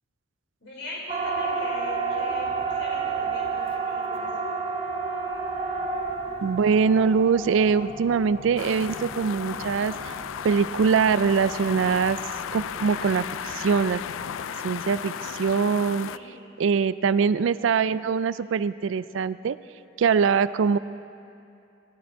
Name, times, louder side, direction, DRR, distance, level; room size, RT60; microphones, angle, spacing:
voice 1, 0.6-4.3 16.1-16.3, left 1 dB, 60° left, -4 dB, 4.0 m, -40 dB
Siren, 1.1-15.4, right 4 dB, 30° right, 1.3 m, -32 dB
sound 1, 5.3-14.4, equal, 40° left, 3.0 m, -50 dB
voice 2, 6.4-10.1 10.4-12.2 12.5-14.0 14.6-16.1 16.6-19.6 20.0-20.8, right 6 dB, 75° right, 16 dB, 0.3 m, -23 dB
sound 2, 8.6-16.2, left 8 dB, 90° left, 0.3 m, -35 dB
19.0 x 12.0 x 4.6 m, 2.6 s
head